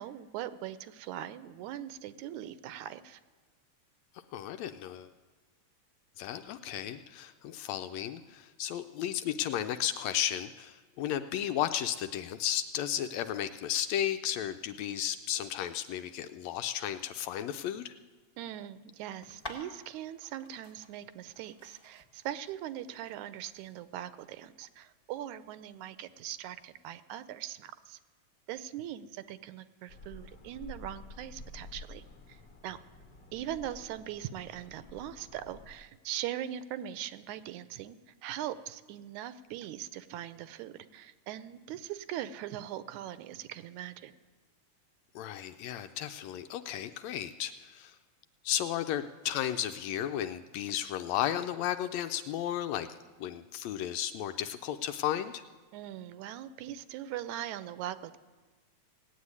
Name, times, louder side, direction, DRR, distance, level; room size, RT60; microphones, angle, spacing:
voice 1, 0.0-3.2 18.4-28.0 28.5-32.0 32.3-32.8 33.3-44.1 55.7-58.2, right 11 dB, 80° right, 14 dB, 2.0 m, -41 dB
voice 2, 4.3-5.1 6.2-18.0 45.1-47.9 48.4-52.9 53.2-55.4, left 11 dB, 75° left, 9 dB, 1.7 m, -34 dB
sound 1, 19.2-26.9, left 1 dB, 15° left, 1.0 m, -52 dB
sound 2, 29.9-35.7, left 2 dB, 50° left, 1.4 m, -50 dB
17.5 x 8.4 x 9.6 m, 1.3 s
omnidirectional pair, 3.4 m